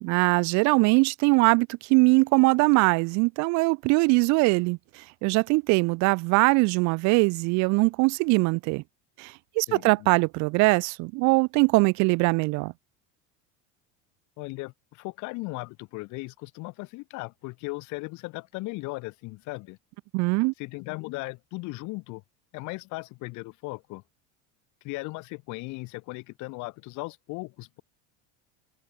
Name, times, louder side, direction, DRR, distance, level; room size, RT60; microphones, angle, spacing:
voice 1, 0.0-4.8 5.2-8.8 9.2-12.7 20.1-20.5, right 27 dB, 55° right, 1.0 m, -22 dB
voice 2, 9.7-10.1 14.4-19.8 20.6-22.2 22.5-24.0 24.8-27.8, left 24 dB, 60° left, 5.4 m, -37 dB
cardioid pair, 145°, 33 cm